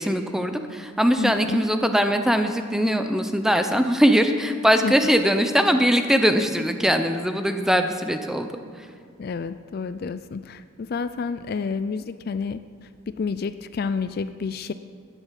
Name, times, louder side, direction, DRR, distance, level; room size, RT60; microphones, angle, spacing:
voice 1, 0.0-8.5, equal, ahead, 7 dB, 0.6 m, -21 dB
voice 2, 1.2-1.7 4.8-5.0 9.2-12.6 13.1-14.7, left 5 dB, 45° left, 12 dB, 0.3 m, -29 dB
12.5 x 10.0 x 7.4 m, 2.2 s
head